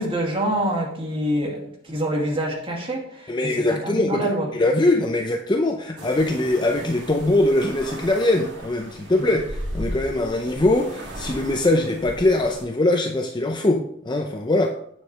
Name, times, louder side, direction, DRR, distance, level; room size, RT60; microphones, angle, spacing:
voice 1, 0.0-4.5 9.2-9.3, right 1 dB, 30° right, -1 dB, 2.3 m, -26 dB
voice 2, 3.3-4.3 4.5-14.8, left 2 dB, 25° left, 3 dB, 0.6 m, -22 dB
sound 1, 6.0-12.6, equal, 65° right, 3.2 m, -36 dB
8.6 x 7.4 x 3.3 m, 0.72 s
head